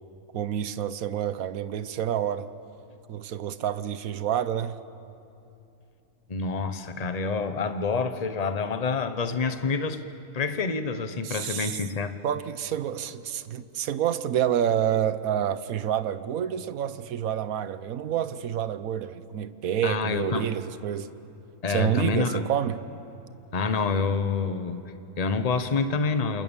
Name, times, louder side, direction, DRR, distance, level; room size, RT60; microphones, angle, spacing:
voice 1, 0.3-2.5 3.1-4.8 11.2-11.8 12.2-21.1 21.7-22.8, right 10 dB, 80° right, 1.3 m, -28 dB
voice 2, 6.3-10.0 10.3-12.2 19.8-20.5 21.6-22.5 23.5-26.4, left 4 dB, 30° left, 1.1 m, -27 dB
28.5 x 27.0 x 7.2 m
omnidirectional pair, 1.5 m